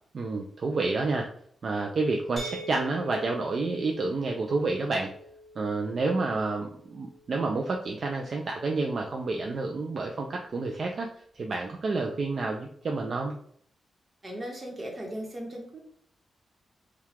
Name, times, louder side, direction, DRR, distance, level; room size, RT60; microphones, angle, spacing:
voice 1, 0.1-1.3 1.6-5.1 5.6-11.1 11.3-13.3, right 3 dB, 45° right, 1 dB, 0.4 m, -29 dB
sound 1, 2.4-8.1, equal, 15° left, 1.0 m, -45 dB
voice 2, 14.2-15.8, right 1 dB, 25° right, 0 dB, 1.1 m, -37 dB
4.6 x 2.3 x 3.5 m, 0.64 s
wide cardioid pair, 135°, 0 cm